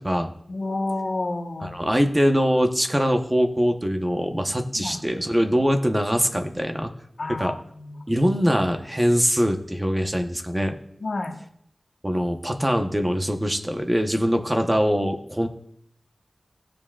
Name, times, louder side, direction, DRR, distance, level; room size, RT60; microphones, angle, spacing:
voice 1, 0.5-1.7 4.7-5.0 7.2-8.0 11.0-11.3, left 2 dB, 70° left, 3 dB, 1.1 m, -29 dB
voice 2, 1.6-6.9 7.3-7.6 8.1-10.7 12.0-15.5, equal, 15° right, 4 dB, 0.9 m, -23 dB
17.0 x 7.4 x 2.4 m, 0.70 s
wide cardioid pair, 75°, 0 cm